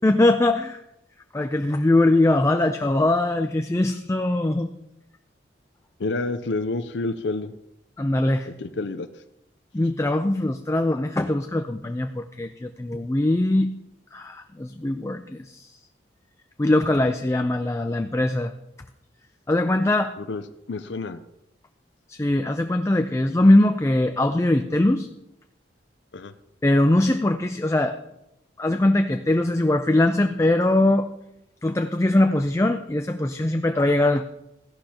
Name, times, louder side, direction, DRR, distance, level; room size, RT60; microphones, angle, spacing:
voice 1, 0.0-0.8 1.3-4.7 8.0-8.5 9.7-13.7 14.1-15.7 16.6-18.5 19.5-20.1 22.1-25.1 26.6-28.0 28.6-31.1 31.6-34.2, left 1 dB, 15° left, 7 dB, 0.4 m, -21 dB
voice 2, 6.0-7.6 8.5-9.1 20.2-20.4 20.7-21.2 26.1-26.3, left 3 dB, 70° left, 9 dB, 0.5 m, -29 dB
15.5 x 11.5 x 2.9 m, 0.86 s
head